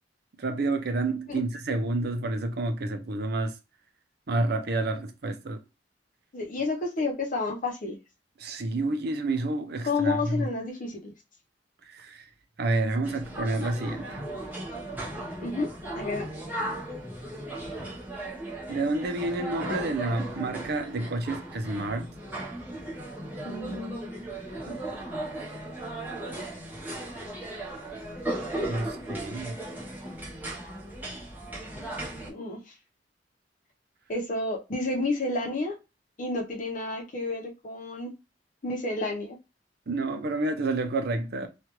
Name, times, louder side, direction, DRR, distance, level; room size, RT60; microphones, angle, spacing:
voice 1, 0.4-3.6 4.3-5.6 8.4-10.5 11.9-12.3 12.6-14.2 18.7-22.1 28.7-29.6 39.9-41.5, right 2 dB, 60° right, 0.6 m, -29 dB
voice 2, 6.3-8.0 9.8-11.1 15.4-15.7 15.9-16.3 23.4-24.2 24.7-24.8 32.3-32.6 34.1-35.8 36.2-38.1 38.6-39.4, left 3 dB, 45° left, 0.8 m, -30 dB
sound 1, 13.0-32.3, right 1 dB, 10° right, 1.0 m, -36 dB
3.2 x 2.4 x 2.9 m
head